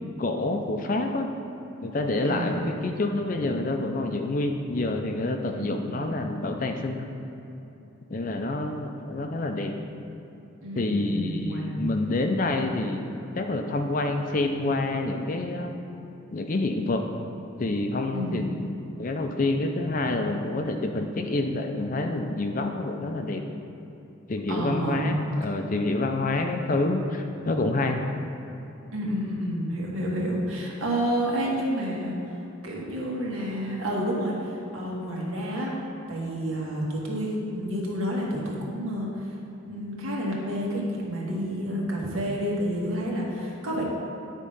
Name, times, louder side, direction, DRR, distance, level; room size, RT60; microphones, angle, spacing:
voice 1, 0.2-1.3 1.8-7.0 8.1-9.7 10.7-13.1 13.3-15.7 16.3-17.0 17.6-23.4 24.3-25.2 25.4-28.0, left 2 dB, 40° left, 4 dB, 0.5 m, -27 dB
voice 2, 2.3-2.8 5.4-6.1 10.6-11.9 18.1-18.5 24.5-25.2 28.9-32.4 32.6-35.7 36.1-39.4 39.6-43.8, equal, 80° right, -4 dB, 1.6 m, -30 dB
9.7 x 3.7 x 5.3 m, 2.9 s
head